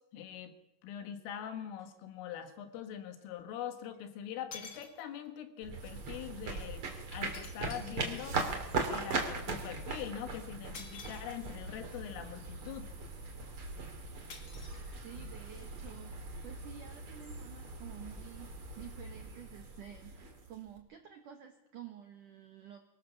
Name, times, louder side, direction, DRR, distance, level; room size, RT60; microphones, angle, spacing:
voice 1, 0.1-0.5 0.8-8.4 8.9-12.9, left 9 dB, 80° left, 8 dB, 4.1 m, -43 dB
sound 1, 1.8-1.9 3.9-4.0 4.5-5.4 7.3-8.6 10.7-11.7 14.3-15.4, left 5 dB, 55° left, 1.5 m, -51 dB
sound 2, 5.6-20.8, right 3 dB, 35° right, 2.5 m, -40 dB
voice 2, 14.7-18.5 18.8-22.8, right 10 dB, 75° right, 5 dB, 1.9 m, -51 dB
24.0 x 15.5 x 7.1 m, 0.90 s
omnidirectional pair, 5.8 m